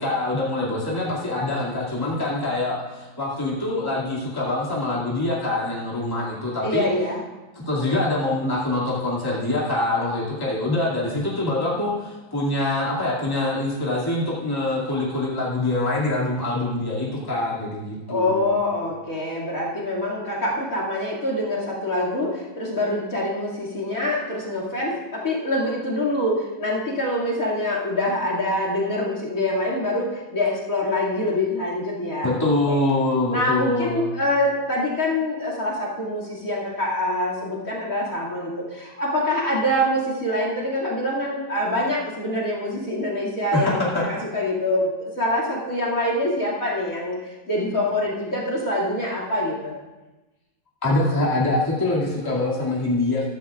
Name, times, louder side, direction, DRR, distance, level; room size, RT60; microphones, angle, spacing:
voice 1, 0.0-6.9 7.5-18.5 32.2-34.1 43.5-44.0 50.8-53.3, left 2 dB, 10° left, -6 dB, 2.3 m, -24 dB
voice 2, 6.6-7.2 18.1-32.8 33.3-49.7, left 1 dB, 45° left, -3 dB, 2.8 m, -25 dB
15.5 x 13.0 x 2.5 m, 1.1 s
omnidirectional pair, 2.1 m